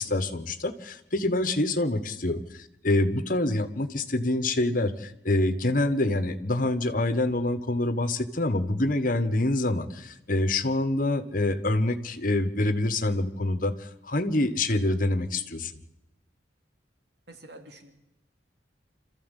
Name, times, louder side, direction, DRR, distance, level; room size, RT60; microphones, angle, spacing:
voice 1, 0.0-15.7, left 2 dB, 50° left, 11 dB, 1.4 m, -26 dB
voice 2, 17.3-18.0, right 1 dB, 60° right, 6 dB, 2.6 m, -48 dB
26.5 x 14.0 x 8.3 m, 0.94 s
head